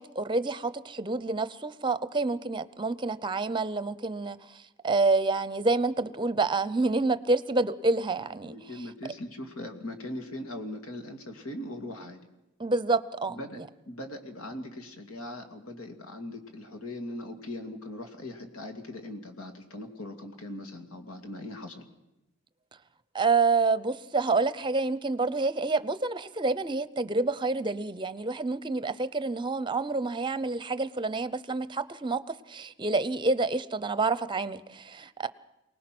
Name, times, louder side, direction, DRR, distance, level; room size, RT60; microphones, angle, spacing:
voice 1, 0.0-4.4 4.8-8.6 12.6-13.6 23.1-35.3, right 3 dB, 25° right, 15 dB, 0.7 m, -28 dB
voice 2, 8.4-12.2 13.3-13.6 13.9-21.8, left 1 dB, 85° left, 6 dB, 2.6 m, -40 dB
24.0 x 19.0 x 6.1 m, 0.96 s
head